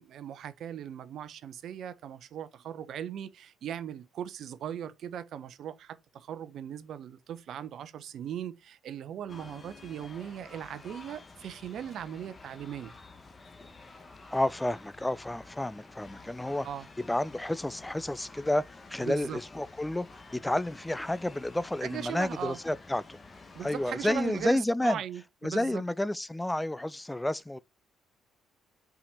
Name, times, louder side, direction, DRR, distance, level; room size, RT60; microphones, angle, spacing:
voice 1, 0.0-12.9 16.6-16.9 19.0-19.4 21.8-22.6 23.5-25.8, right 9 dB, 65° right, 0.9 m, -39 dB
sound 1, 9.3-24.5, left 3 dB, 35° left, 1.8 m, -51 dB
voice 2, 14.3-16.7 17.1-20.1 20.4-23.2 23.6-25.0 25.4-27.6, left 1 dB, 10° left, 0.5 m, -30 dB
5.7 x 5.1 x 4.1 m
hypercardioid pair, 50°, 0 cm